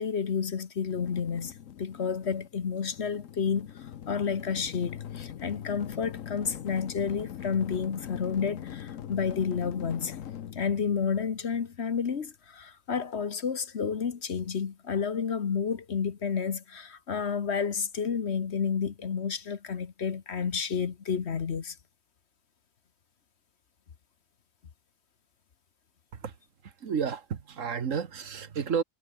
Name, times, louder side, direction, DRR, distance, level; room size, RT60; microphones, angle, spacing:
voice 1, 0.0-10.2 10.5-21.8, left 6 dB, 55° left, 1.4 m, -30 dB
sound 1, 0.9-11.9, left 10 dB, 75° left, 1.3 m, -42 dB
voice 2, 26.6-28.8, right 6 dB, 65° right, 1.7 m, -31 dB
omnidirectional pair, 1.4 m